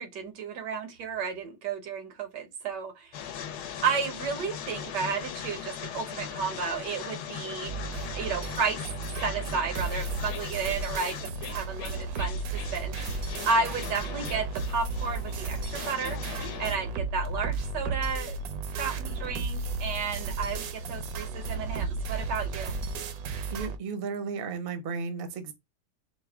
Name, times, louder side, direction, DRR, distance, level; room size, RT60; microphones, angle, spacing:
voice 1, 0.0-3.2 3.8-7.7 8.1-8.8 9.2-16.2 16.6-18.4 18.8-22.7, right 5 dB, 85° right, 1.5 m, -32 dB
sound 1, 3.1-16.7, left 8 dB, 75° left, 1.2 m, -39 dB
sound 2, 7.7-23.8, right 3 dB, 70° right, 1.0 m, -34 dB
voice 2, 23.5-25.5, right 5 dB, 50° right, 0.7 m, -34 dB
4.6 x 2.1 x 3.4 m
omnidirectional pair, 1.8 m